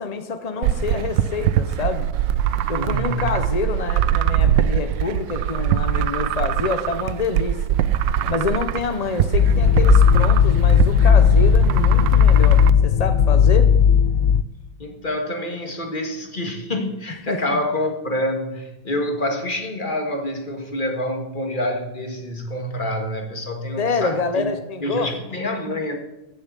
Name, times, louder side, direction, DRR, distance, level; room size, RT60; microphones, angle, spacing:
voice 1, 0.0-2.1 2.7-7.8 8.3-13.7 17.3-17.6 23.8-25.1, left 4 dB, 45° left, 8 dB, 0.5 m, -27 dB
sound 1, 0.6-12.7, right 10 dB, 80° right, 1.3 m, -22 dB
voice 2, 2.7-3.3 14.8-24.5 24.8-26.0, left 1 dB, 25° left, 4 dB, 2.0 m, -27 dB
sound 2, 9.3-14.4, left 8 dB, 65° left, 0.9 m, -15 dB
15.5 x 7.0 x 8.3 m, 1.0 s
omnidirectional pair, 2.0 m